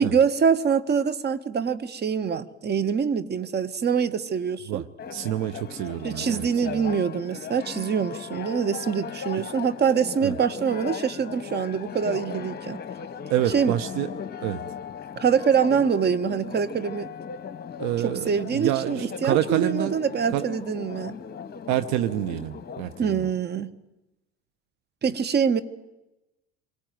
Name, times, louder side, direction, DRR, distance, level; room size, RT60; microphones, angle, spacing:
voice 1, 0.0-4.8 6.0-12.8 13.5-13.8 15.2-17.1 18.0-21.2 23.0-23.7 25.0-25.6, right 6 dB, 30° right, 1.5 m, -24 dB
Church bell, 5.0-23.3, left 7 dB, 30° left, 1.6 m, -38 dB
voice 2, 5.1-6.8 10.2-10.3 13.3-14.1 14.4-14.6 17.8-20.0 20.3-20.5 21.7-23.2, right 13 dB, 55° right, 1.1 m, -27 dB
27.5 x 22.5 x 9.4 m
figure-of-eight pair, 70°, 34 cm